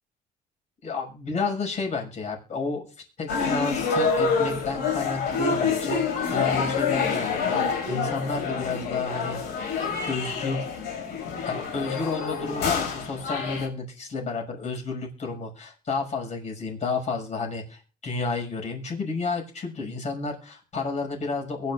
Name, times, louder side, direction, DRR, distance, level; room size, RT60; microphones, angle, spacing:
voice 1, 0.8-2.8 3.2-6.0 6.3-9.7 10.1-10.7 11.1-21.7, left 4 dB, 45° left, 1 dB, 6.4 m, -31 dB
sound 1, 3.3-13.7, left 5 dB, 80° left, 6.1 m, -27 dB
22.5 x 11.0 x 2.6 m, 0.38 s
cardioid pair, 110°, 17 cm